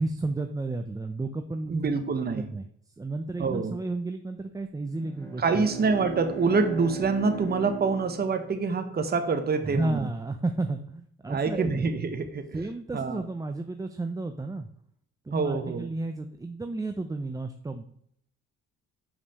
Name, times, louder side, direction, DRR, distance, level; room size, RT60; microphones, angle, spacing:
voice 1, 0.0-1.9 2.4-2.6 3.0-5.7 9.6-11.9 12.5-14.7 15.3-17.8, right 2 dB, 10° right, 6 dB, 0.5 m, -32 dB
voice 2, 1.7-2.5 3.4-3.8 5.4-10.1 11.3-12.5 12.9-13.2 15.3-15.9, right 4 dB, 30° right, 7 dB, 0.9 m, -26 dB
Bowed string instrument, 4.9-9.5, right 5 dB, 10° left, 1.9 m, -39 dB
5.5 x 4.9 x 6.4 m, 0.68 s
cardioid pair, 90°, 30 cm